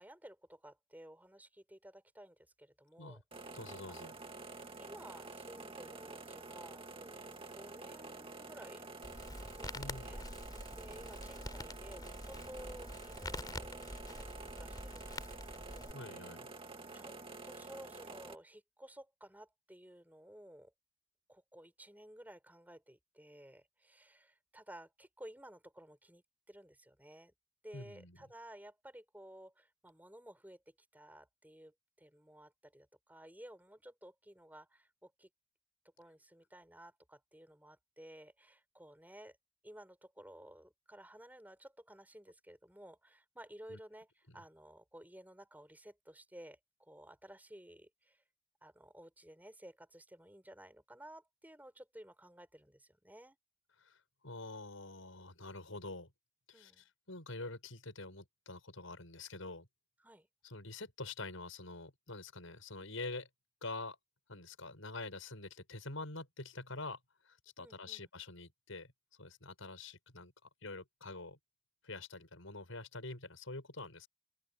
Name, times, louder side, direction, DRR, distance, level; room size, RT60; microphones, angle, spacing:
voice 1, 0.0-3.2 3.9-4.0 4.3-8.9 9.4-10.2 10.8-14.3 14.6-15.9 16.9-17.2 17.4-20.7 21.3-27.3 27.6-35.3 36.0-39.4 39.6-48.2 48.6-53.4 56.5-56.8 60.0-60.3 67.6-68.0, right 1 dB, 10° right, 6.1 m, -55 dB
sound 1, 3.3-18.3, right 3 dB, 25° right, 2.1 m, -49 dB
voice 2, 3.5-4.1 9.7-10.2 15.9-16.5 27.7-28.2 43.7-43.8 44.3-44.4 53.8-54.0 54.2-56.1 56.5-59.7 60.4-63.3 63.6-64.0 64.3-67.0 67.2-68.9 69.2-71.4 71.8-74.1, left 2 dB, 85° left, 6.2 m, -46 dB
Crackle, 9.0-15.9, left 1 dB, 20° left, 4.1 m, -46 dB
open air
head